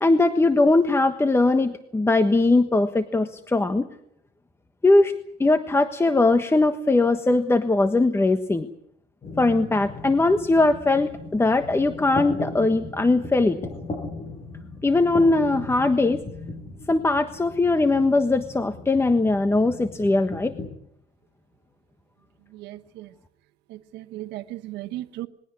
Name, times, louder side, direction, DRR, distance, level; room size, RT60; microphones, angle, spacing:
voice 1, 0.0-3.9 4.8-5.1 5.4-8.7 9.4-13.6 14.8-16.2 16.9-20.5, left 2 dB, 15° left, 1.3 m, -20 dB
sound 1, 9.2-20.7, left 3 dB, 40° left, 7.4 m, -37 dB
voice 2, 22.5-23.1 23.7-25.3, right 15 dB, 90° right, 1.1 m, -36 dB
21.5 x 16.5 x 9.5 m
cardioid pair, 110°, 17 cm